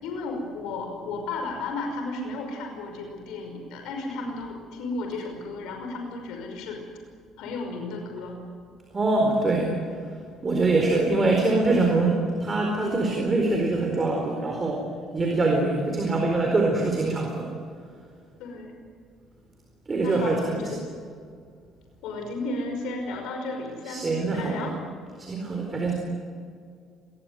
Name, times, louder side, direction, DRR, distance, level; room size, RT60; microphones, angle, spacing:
voice 1, 0.0-6.8 7.4-8.4 18.4-18.7 20.0-20.8 22.0-24.8, left 2 dB, 80° left, 3 dB, 5.6 m, -34 dB
voice 2, 8.9-9.7 10.4-14.8 15.1-17.5 19.9-20.9 23.9-24.7 25.2-25.9, right 2 dB, 25° right, 1 dB, 4.4 m, -24 dB
27.0 x 21.0 x 9.4 m, 2.2 s
cardioid pair, 135°, 0 cm